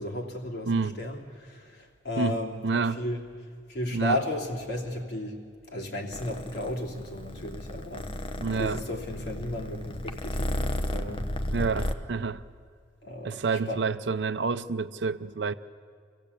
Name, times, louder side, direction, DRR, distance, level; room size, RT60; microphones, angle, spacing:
voice 1, 0.0-3.2 3.7-5.3 5.7-8.1 8.6-11.3 13.0-13.8, left 1 dB, 60° left, 3.0 m, -34 dB
voice 2, 0.7-1.0 2.2-3.0 3.9-4.2 8.4-8.8 11.5-12.4 13.2-15.5, right 4 dB, 70° right, 0.6 m, -28 dB
Purr, 6.1-11.9, left 1 dB, 30° left, 0.9 m, -33 dB
26.5 x 16.0 x 8.3 m
head